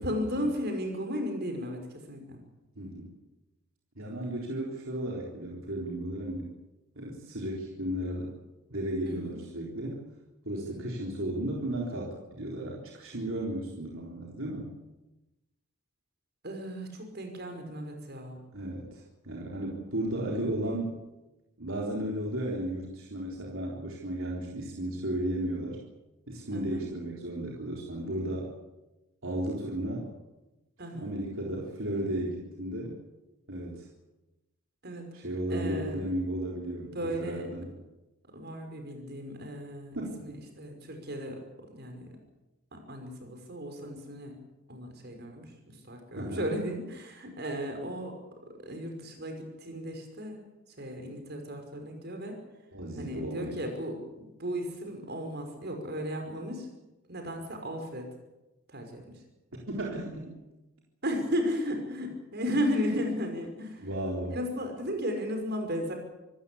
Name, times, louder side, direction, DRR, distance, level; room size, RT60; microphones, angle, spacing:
voice 1, 0.0-2.4 9.1-9.4 10.7-10.9 16.4-18.4 26.5-26.9 30.8-31.1 34.8-35.9 36.9-37.5 38.3-42.2 42.7-44.4 44.7-48.2 48.6-50.4 50.8-52.4 53.0-56.7 57.1-58.1 58.7-59.0 61.0-63.9 64.3-65.9, equal, 45° right, 5 dB, 5.4 m, -35 dB
voice 2, 2.8-3.1 4.0-6.5 7.0-8.4 8.7-10.1 10.4-14.8 18.5-20.9 21.6-25.8 26.3-28.5 29.2-30.1 30.9-33.0 33.5-33.9 35.1-37.7 40.0-40.4 46.2-46.4 52.7-53.6 59.7-60.4 63.8-64.4, right 1 dB, 65° right, -2 dB, 4.0 m, -34 dB
26.0 x 15.0 x 8.5 m, 1.0 s
head